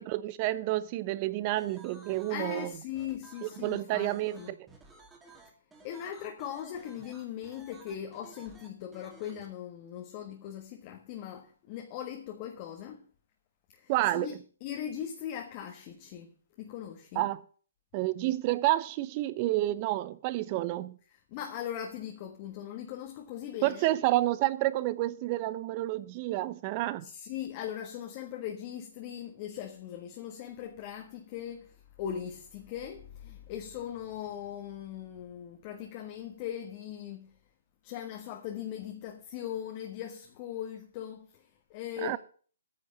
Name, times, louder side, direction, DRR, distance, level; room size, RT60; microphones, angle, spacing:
voice 1, 0.0-2.7 3.4-4.4 13.9-14.3 17.2-17.4 17.9-21.0 23.6-27.1 42.0-42.2, right 16 dB, 35° right, 0.7 m, -29 dB
sound 1, 1.6-9.5, right 3 dB, 10° right, 2.2 m, -55 dB
voice 2, 2.3-4.6 5.8-13.1 13.7-14.3 14.6-17.3 21.1-23.9 27.0-37.3 37.8-42.2, left 10 dB, 35° left, 1.4 m, -40 dB
9.8 x 6.4 x 8.2 m
hypercardioid pair, 140°, 0 cm